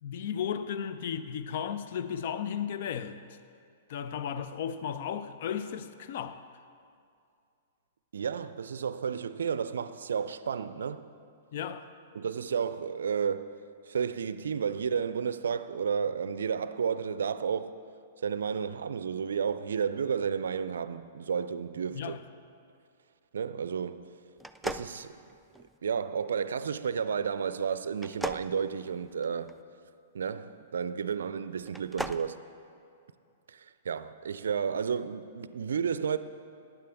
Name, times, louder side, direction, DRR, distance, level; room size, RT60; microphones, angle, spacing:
voice 1, 0.0-3.2 3.9-6.4 11.5-11.9 21.9-22.2, left 8 dB, 55° left, 0.6 m, -34 dB
voice 2, 8.1-11.1 12.1-17.8 18.2-22.2 23.3-24.1 24.6-25.2 25.8-29.5 30.1-32.4 33.5-36.2, right 6 dB, 75° right, 0.4 m, -32 dB
sound 1, 24.4-25.8 28.0-29.5 31.6-32.3, equal, ahead, 0.3 m, -38 dB
15.0 x 9.3 x 3.5 m
hypercardioid pair, 110°, 0 cm